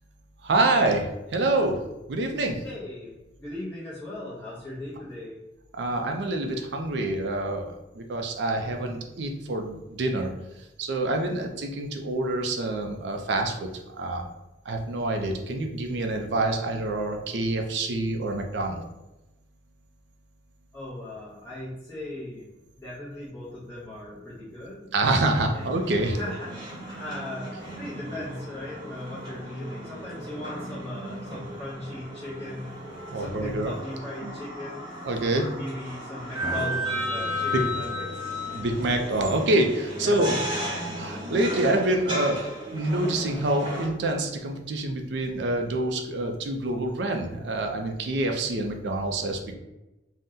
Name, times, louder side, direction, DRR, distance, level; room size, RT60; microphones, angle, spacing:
voice 1, 0.4-1.8 2.1-2.6 5.7-10.3 10.8-13.7 13.9-14.3 14.7-18.8 24.9-26.2 33.1-33.7 34.2-34.3 35.0-35.5 37.5-37.6 38.5-40.3 41.0-49.5, right 2 dB, 70° right, 4 dB, 0.4 m, -26 dB
voice 2, 2.6-5.4 20.7-22.5 22.8-24.9 25.5-25.7 26.2-26.6 27.0-32.8 33.1-34.9 35.3-38.5 40.0-40.6, left 1 dB, 15° left, -8 dB, 0.6 m, -38 dB
sound 1, 25.5-43.9, equal, 25° right, 0.9 m, -35 dB
2.7 x 2.1 x 3.6 m, 0.98 s
head